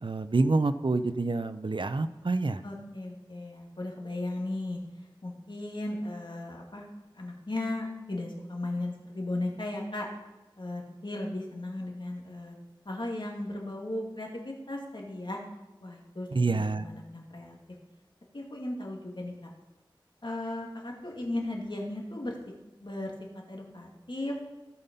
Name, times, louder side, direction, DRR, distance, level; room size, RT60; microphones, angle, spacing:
voice 1, 0.0-2.6 16.3-16.9, right 3 dB, 65° right, 12 dB, 0.5 m, -27 dB
voice 2, 2.6-4.8 5.2-6.9 7.1-10.1 10.6-12.6 12.8-15.4 15.8-17.6 18.3-19.5 20.2-22.3 22.8-23.1 23.5-24.4, left 1 dB, 65° left, -1 dB, 2.4 m, -36 dB
16.5 x 5.7 x 5.4 m, 1.0 s
wide cardioid pair, 45°, 9 cm